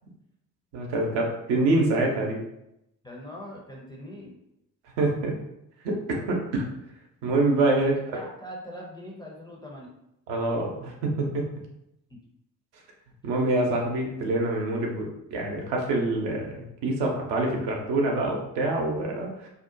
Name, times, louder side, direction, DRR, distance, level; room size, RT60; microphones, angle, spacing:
voice 1, 0.7-2.4 5.0-5.3 5.8-6.7 7.2-8.0 10.3-11.4 13.2-19.5, right 2 dB, 60° right, 0 dB, 0.7 m, -26 dB
voice 2, 3.0-4.4 8.1-9.9 12.1-12.2, equal, 10° left, -3 dB, 0.5 m, -41 dB
2.6 x 2.1 x 2.6 m, 0.82 s
figure-of-eight pair, 40°, 48 cm